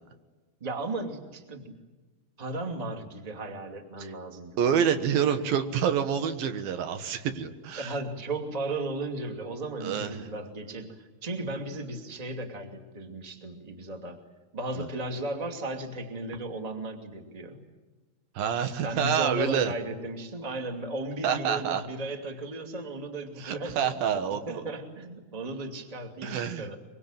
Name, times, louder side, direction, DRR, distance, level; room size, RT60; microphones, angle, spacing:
voice 1, 0.6-1.8 2.4-5.5 7.8-14.2 14.5-17.6 18.8-24.2 24.5-26.8, right 2 dB, 15° right, 4 dB, 1.9 m, -35 dB
voice 2, 4.6-8.0 9.8-10.3 14.8-14.9 18.4-19.7 21.2-21.9 23.4-24.6 26.2-26.7, right 8 dB, 75° right, 9 dB, 3.2 m, -27 dB
24.0 x 23.5 x 9.0 m, 1.2 s
omnidirectional pair, 4.3 m